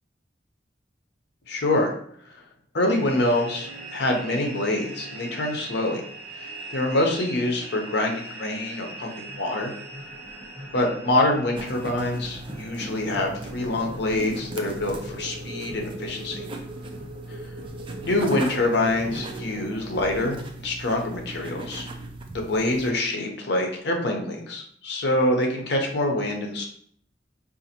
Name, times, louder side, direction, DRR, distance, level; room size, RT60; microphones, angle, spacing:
voice 1, 1.5-1.9 2.3-2.4 2.7-6.1 6.3-9.7 10.7-16.4 18.0-21.9 22.3-26.7, left 1 dB, 65° left, 2 dB, 0.7 m, -25 dB
sound 1, 2.9-20.0, right 1 dB, 55° right, 1.1 m, -40 dB
sound 2, 11.6-22.9, right 2 dB, 30° right, 0.4 m, -39 dB
3.9 x 2.5 x 2.8 m, 0.62 s
head